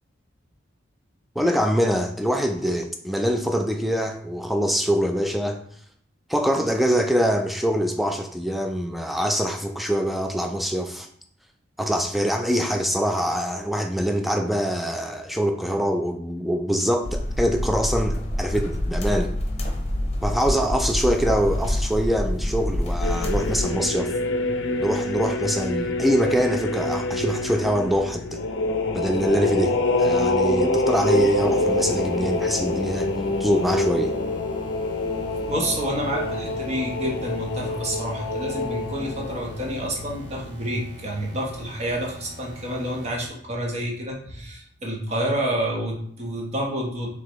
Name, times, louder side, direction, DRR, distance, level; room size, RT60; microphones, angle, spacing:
voice 1, 1.4-5.6 6.3-11.1 11.8-19.3 20.2-24.1 24.8-28.4 28.9-33.1 33.4-34.1, equal, ahead, 5 dB, 0.3 m, -24 dB
sound 1, 17.0-23.6, left 1 dB, 35° left, 0.8 m, -26 dB
sound 2, 23.0-40.4, left 2 dB, 80° left, 0.5 m, -26 dB
sound 3, 31.0-43.3, left 1 dB, 70° right, 1.1 m, -44 dB
voice 2, 35.5-47.1, right 1 dB, 35° right, -1 dB, 0.9 m, -28 dB
4.7 x 3.4 x 3.0 m, 0.63 s
head